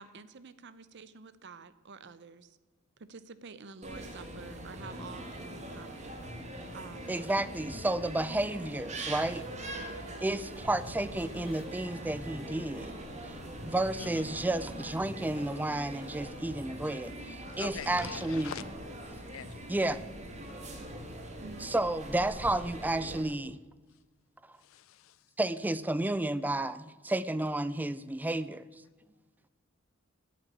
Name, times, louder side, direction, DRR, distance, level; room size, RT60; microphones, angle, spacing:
voice 1, 0.0-2.6 3.0-6.1 6.7-7.1 9.7-10.0 21.4-21.7, right 4 dB, 60° right, 15 dB, 0.7 m, -49 dB
sound 1, 3.8-23.2, right 1 dB, 35° right, 1.7 m, -42 dB
voice 2, 7.1-9.4 9.8-12.9 13.2-13.3 13.6-18.5 19.1-19.2 19.7-20.0 21.6-23.6 25.4-28.6, right 1 dB, 10° right, 16 dB, 0.3 m, -32 dB
sound 2, 8.7-14.5, left 4 dB, 50° left, 0.8 m, -57 dB
voice 3, 17.6-18.6 19.3-19.6 24.7-25.1, left 8 dB, 80° left, 17 dB, 0.4 m, -42 dB
8.5 x 8.3 x 8.6 m, 1.3 s
head